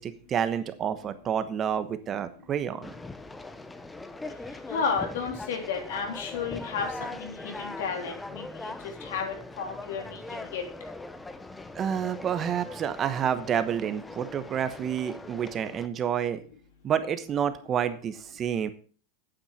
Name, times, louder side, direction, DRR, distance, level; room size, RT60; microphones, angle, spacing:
voice 1, 0.0-2.9 11.7-16.4 16.8-18.7, right 8 dB, 25° right, 11 dB, 1.1 m, -29 dB
Conversation, 2.8-15.9, left 2 dB, 10° left, 0.7 m, -41 dB
voice 2, 4.7-10.6, left 6 dB, 80° left, 3 dB, 3.2 m, -33 dB
9.0 x 7.9 x 5.8 m, 0.41 s
supercardioid pair, 145°, 0 cm